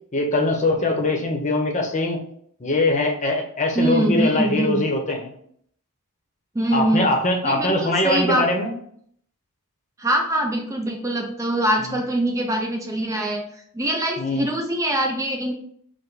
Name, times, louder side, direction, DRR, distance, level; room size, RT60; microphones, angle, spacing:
voice 1, 0.1-2.2 2.6-5.3 6.7-8.7 11.8-12.0 14.2-14.5, left 2 dB, 35° left, 3 dB, 0.8 m, -22 dB
voice 2, 3.7-4.8 6.5-7.1 7.4-8.5 10.0-13.4 13.7-15.5, right 1 dB, 15° right, 1 dB, 0.4 m, -23 dB
4.9 x 2.1 x 4.7 m, 0.64 s
head